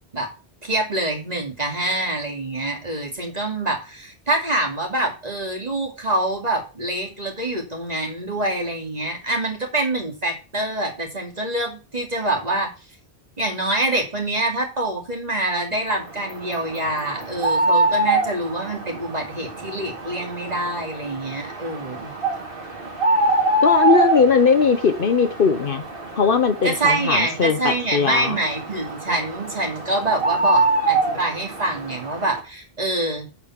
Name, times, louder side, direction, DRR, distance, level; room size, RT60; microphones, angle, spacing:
voice 1, 0.6-12.7 13.4-22.1 26.6-33.3, right 2 dB, 40° right, 2.7 m, -25 dB
sound 1, 16.1-32.4, right 2 dB, 55° right, 2.5 m, -25 dB
voice 2, 23.6-25.8 26.2-28.4 29.1-29.2, left 5 dB, 60° left, 1.1 m, -19 dB
8.6 x 5.0 x 7.3 m
omnidirectional pair, 1.1 m